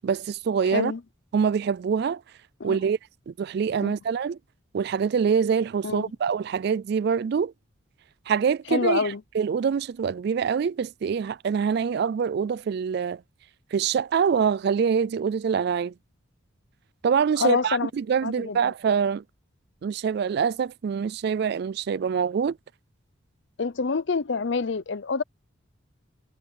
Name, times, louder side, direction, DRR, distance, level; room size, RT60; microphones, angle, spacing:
voice 1, 0.0-0.9 1.3-2.2 2.6-3.0 3.3-4.4 4.7-7.5 8.3-13.2 13.7-15.9 17.0-19.2 19.8-22.6, right 6 dB, 55° right, 0.3 m, -25 dB
voice 2, 0.7-1.0 2.6-2.8 3.8-4.0 5.8-6.1 8.7-9.2 17.4-17.9 18.2-18.7 23.6-25.2, left 4 dB, 60° left, 0.6 m, -27 dB
head